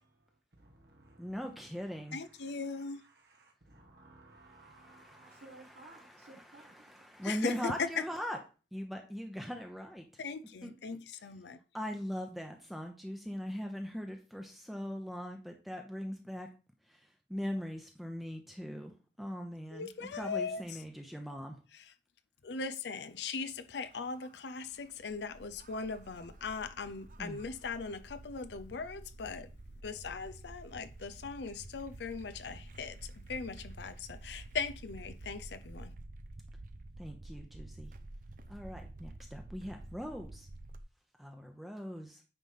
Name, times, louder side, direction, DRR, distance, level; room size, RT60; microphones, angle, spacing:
voice 1, 0.6-7.1 8.1-8.2, right 2 dB, 70° right, 1.4 m, -58 dB
voice 2, 1.2-2.2 4.8-5.4 6.8-8.4 8.7-10.1 10.6-11.0 11.7-16.5 16.9-17.0 17.3-18.9 19.2-21.6 27.2-27.5 37.0-37.9 38.5-40.5 41.2-42.2, equal, ahead, 0.8 m, -40 dB
voice 3, 2.1-3.0 7.2-7.9 10.2-11.6 19.7-20.6 22.4-29.5 29.8-33.0 33.3-35.9, left 4 dB, 75° left, 0.5 m, -39 dB
sound 1, 23.8-40.8, right 2 dB, 45° right, 0.6 m, -50 dB
9.2 x 3.3 x 5.5 m
head